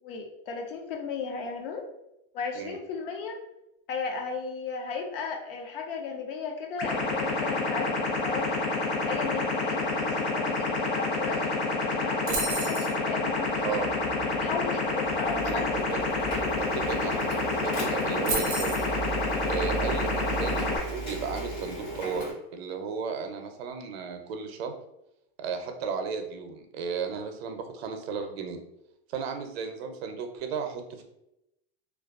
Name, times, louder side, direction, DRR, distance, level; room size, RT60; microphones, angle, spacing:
voice 1, 0.0-1.9 2.3-3.4 3.9-7.9 8.2-8.5 9.0-12.8 13.0-13.6 14.3-15.7 16.1-16.2, left 5 dB, 60° left, 3 dB, 0.6 m, -35 dB
sound 1, 6.8-20.8, left 3 dB, 90° left, 0.8 m, -28 dB
sound 2, 12.3-12.9 16.9-17.0 17.2-17.5 18.3-18.9, right 4 dB, 25° right, 0.3 m, -31 dB
voice 2, 12.3-12.7 13.6-14.0 15.4-15.6 15.9-16.0 16.6-18.8 19.5-24.7 25.4-28.6 29.1-31.0, right 5 dB, 75° right, 6 dB, 0.5 m, -35 dB
Printer, 13.2-22.3, right 2 dB, 40° left, 1.0 m, -36 dB
2.3 x 2.2 x 2.4 m, 0.85 s
supercardioid pair, 165°, 31 cm